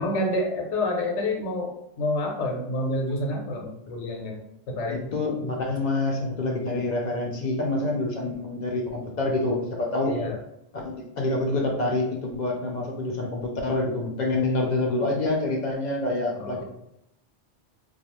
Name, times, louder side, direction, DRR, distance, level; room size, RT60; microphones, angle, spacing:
voice 1, 0.0-1.7 2.0-4.4 4.7-5.1 10.0-10.4 16.4-16.6, left 1 dB, 85° left, 1 dB, 1.0 m, -28 dB
voice 2, 4.9-10.2 10.7-16.6, left 2 dB, 60° left, 0 dB, 0.5 m, -27 dB
2.4 x 2.3 x 2.9 m, 0.77 s
omnidirectional pair, 1.2 m